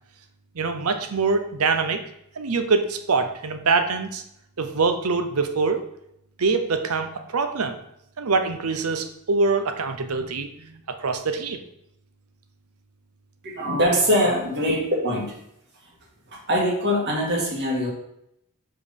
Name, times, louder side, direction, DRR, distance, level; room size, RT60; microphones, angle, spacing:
voice 1, 0.5-2.0 2.4-4.2 4.6-5.8 6.4-7.8 8.2-11.6, right 4 dB, 80° right, 8 dB, 0.7 m, -24 dB
voice 2, 13.4-15.4 16.3-17.9, equal, 55° right, -2 dB, 1.9 m, -23 dB
5.0 x 4.7 x 5.3 m, 0.77 s
head